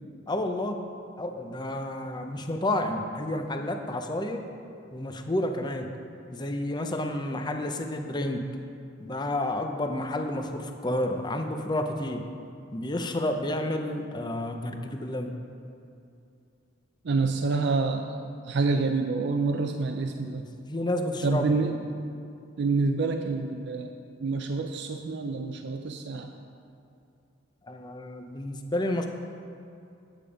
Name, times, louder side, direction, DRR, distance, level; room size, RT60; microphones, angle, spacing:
voice 1, 0.3-0.8 1.2-4.5 4.9-5.9 6.3-8.4 9.0-12.2 12.7-15.4 20.2-21.5 27.7-29.1, left 1 dB, 25° left, 5 dB, 0.6 m, -30 dB
voice 2, 17.0-20.4 21.2-22.0 22.6-23.9 24.2-26.3, right 3 dB, 65° right, 4 dB, 0.5 m, -27 dB
9.0 x 8.5 x 5.1 m, 2.5 s
head